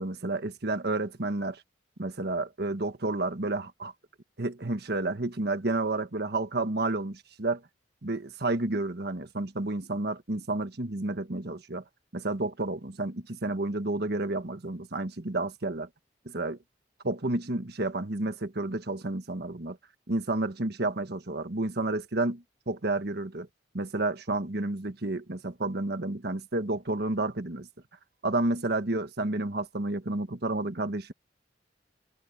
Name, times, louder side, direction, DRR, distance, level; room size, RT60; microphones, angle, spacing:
voice 1, 0.0-1.6 2.0-3.9 4.4-7.6 8.0-11.8 12.1-15.9 16.2-16.6 17.0-19.8 20.1-23.5 23.7-27.7 28.2-31.1, right 2 dB, 60° right, 1.4 m, -30 dB
head